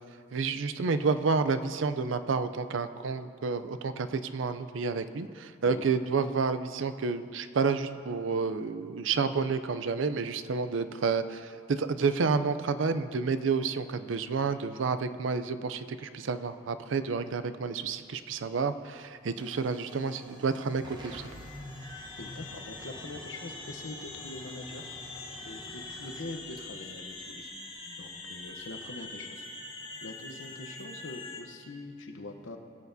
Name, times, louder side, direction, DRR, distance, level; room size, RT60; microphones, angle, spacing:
voice 1, 0.3-21.5, right 4 dB, 75° right, 11 dB, 0.5 m, -30 dB
Hiss / Fire / Tick, 17.7-28.1, right 1 dB, 25° right, 1.0 m, -52 dB
sound 1, 20.8-31.4, left 3 dB, 25° left, 0.9 m, -43 dB
voice 2, 22.2-24.8 25.4-27.5 28.0-29.5 30.0-32.6, left 2 dB, 75° left, 5 dB, 0.9 m, -43 dB
19.5 x 8.2 x 2.7 m, 2.3 s
head